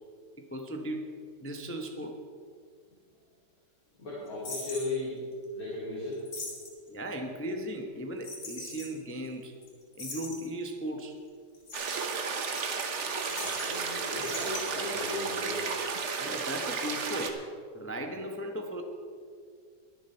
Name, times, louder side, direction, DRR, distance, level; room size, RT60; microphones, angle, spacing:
voice 1, 0.4-1.1 1.4-2.2 6.9-9.6 10.0-11.2 16.2-17.4 17.7-18.8, right 1 dB, 15° left, 3 dB, 0.4 m, -37 dB
voice 2, 4.0-5.2 5.5-6.3 13.3-15.8, left 2 dB, 55° left, -7 dB, 3.2 m, -36 dB
sound 1, 4.4-4.9 6.1-6.9 8.2-8.9 9.3-9.4 9.6-9.7 9.9-10.7 11.5-13.9 14.1-14.6, left 3 dB, 70° left, 3.0 m, -41 dB
sound 2, 11.7-17.3, right 5 dB, 50° right, 1.1 m, -33 dB
22.0 x 7.4 x 4.4 m, 2.1 s
omnidirectional pair, 1.9 m